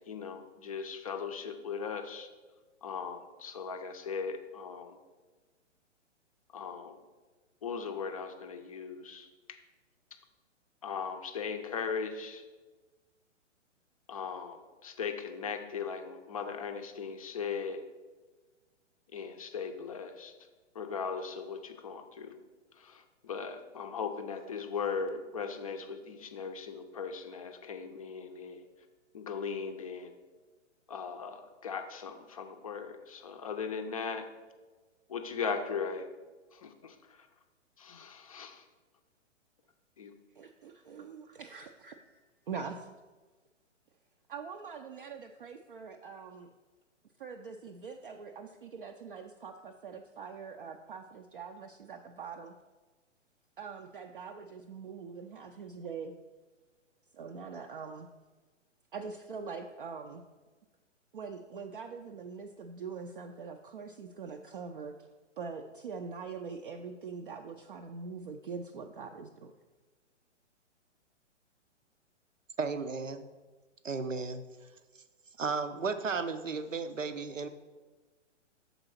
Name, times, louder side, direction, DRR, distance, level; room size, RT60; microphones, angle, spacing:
voice 1, 0.0-2.3 2.8-5.0 6.5-7.0 7.6-9.6 10.8-12.4 14.1-17.9 19.1-20.3 20.7-22.3 22.8-28.7 29.1-30.1 30.9-34.3 35.1-36.1 36.5-37.3 37.8-38.6 40.0-40.1, left 5 dB, 30° left, 6 dB, 0.5 m, -38 dB
voice 2, 40.3-42.9 44.3-46.5 47.2-52.5 53.6-56.1 57.1-58.1 58.9-60.2 61.1-65.1 65.4-69.5, right 5 dB, 45° right, 4 dB, 0.4 m, -43 dB
voice 3, 72.6-73.3 73.8-74.4 75.4-77.5, right 4 dB, 85° right, 10 dB, 0.6 m, -34 dB
6.7 x 4.0 x 5.8 m, 1.3 s
figure-of-eight pair, 120°, 37 cm